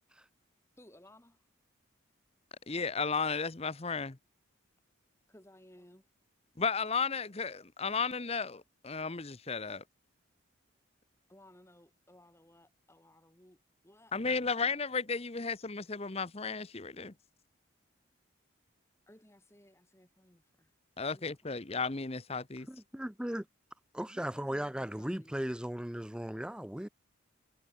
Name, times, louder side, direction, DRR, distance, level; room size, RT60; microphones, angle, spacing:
voice 1, 0.8-1.5 5.3-6.0 11.3-14.2 19.1-20.7 21.1-21.6 24.1-25.4, left 1 dB, 15° left, 2.7 m, -59 dB
voice 2, 2.7-4.2 6.6-9.8 14.1-17.1 21.0-22.7, left 5 dB, 30° left, 0.9 m, -34 dB
voice 3, 22.7-23.5 23.9-26.9, equal, 5° right, 0.4 m, -37 dB
head